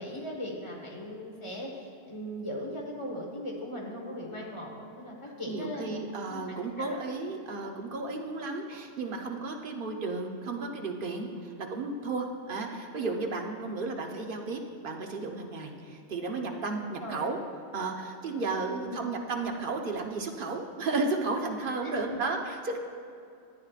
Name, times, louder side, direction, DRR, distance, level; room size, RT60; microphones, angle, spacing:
voice 1, 0.0-6.0 6.3-7.1 16.7-17.3 18.7-19.1 21.8-22.4, equal, 25° left, -2 dB, 1.4 m, -39 dB
voice 2, 5.5-17.4 17.7-22.8, right 3 dB, 50° right, 2 dB, 0.9 m, -33 dB
14.0 x 8.6 x 2.4 m, 2.4 s
omnidirectional pair, 1.2 m